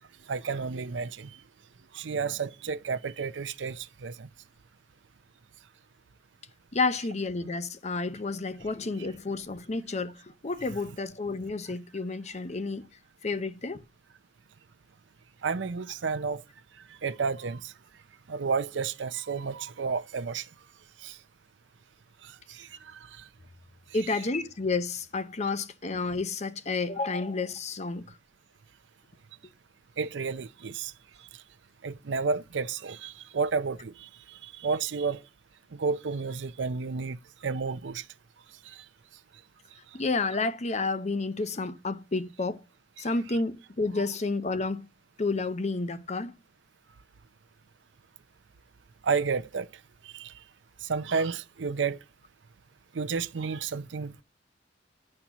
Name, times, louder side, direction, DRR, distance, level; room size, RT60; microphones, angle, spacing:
voice 1, 0.3-1.4 1.9-4.3 15.4-16.4 17.0-17.7 18.3-20.5 21.0-21.2 22.2-23.2 30.0-30.9 31.8-35.2 35.7-38.0 38.7-38.8 43.0-43.1 49.0-49.7 50.0-50.3 50.8-52.0 52.9-54.2, right 5 dB, 90° right, 0.6 m, -31 dB
voice 2, 6.7-12.9 13.2-13.8 23.9-28.0 39.9-42.6 43.0-44.9 45.2-46.3, left 3 dB, 40° left, 0.8 m, -30 dB
10.5 x 4.3 x 6.0 m
head